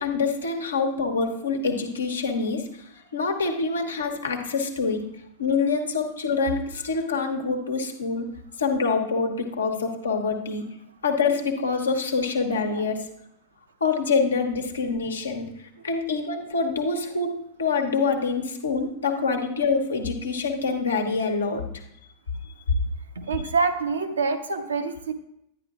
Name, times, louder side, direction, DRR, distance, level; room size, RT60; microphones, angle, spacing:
voice 1, 0.0-5.1 5.4-8.3 8.6-10.7 11.0-13.1 13.8-21.6, left 4 dB, 70° left, 3 dB, 1.1 m, -26 dB
voice 2, 23.2-25.1, right 4 dB, 70° right, 5 dB, 0.9 m, -26 dB
11.0 x 9.8 x 2.4 m, 0.78 s
figure-of-eight pair, 90°, 0 cm